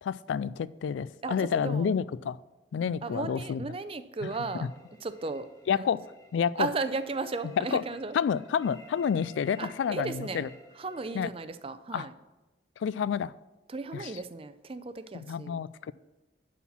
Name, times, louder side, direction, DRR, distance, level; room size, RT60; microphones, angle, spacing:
voice 1, 0.0-2.4 2.7-3.6 4.2-4.3 4.5-4.7 5.7-6.0 6.3-6.7 7.6-7.8 8.1-10.5 11.1-11.3 11.9-12.1 12.8-13.3 13.9-14.1 15.1-15.9, left 7 dB, 80° left, 19 dB, 0.3 m, -29 dB
voice 2, 1.2-1.9 3.0-4.7 5.0-5.5 5.7-5.9 6.6-8.1 9.6-10.5 10.8-12.1 13.7-15.6, right 3 dB, 30° right, 12 dB, 0.5 m, -35 dB
sound 1, 4.3-11.2, left 2 dB, 20° left, 1.2 m, -54 dB
11.0 x 4.3 x 7.2 m, 1.1 s
head